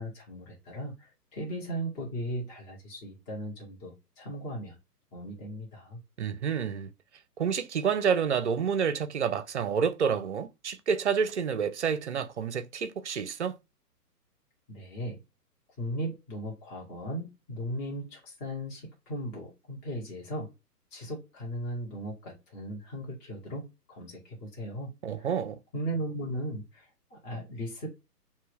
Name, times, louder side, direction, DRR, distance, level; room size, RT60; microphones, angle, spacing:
voice 1, 0.0-4.8 5.1-6.0 14.7-15.2 15.8-20.5 20.9-24.9 25.2-25.3 25.7-27.9, right 1 dB, 20° left, 1.7 m, -37 dB
voice 2, 6.2-6.9 7.4-13.6 25.0-25.6, right 7 dB, 45° right, 0.7 m, -29 dB
4.6 x 2.8 x 3.1 m
figure-of-eight pair, 130°, 48 cm